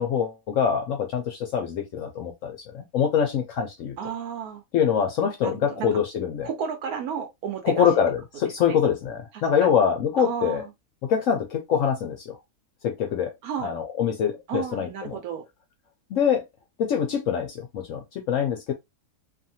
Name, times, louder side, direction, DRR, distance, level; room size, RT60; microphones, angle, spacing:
voice 1, 0.0-3.9 4.7-6.5 7.6-10.6 11.0-12.4 12.8-13.3 13.6-15.1 16.1-16.4 16.8-18.7, left 8 dB, 70° left, 0.8 m, -24 dB
voice 2, 4.0-4.6 5.4-6.0 6.4-7.8 8.7-8.8 9.6-9.8 10.2-10.7 13.4-13.7 14.5-15.4, right 7 dB, 70° right, 1.1 m, -32 dB
2.7 x 2.4 x 2.7 m
omnidirectional pair, 1.7 m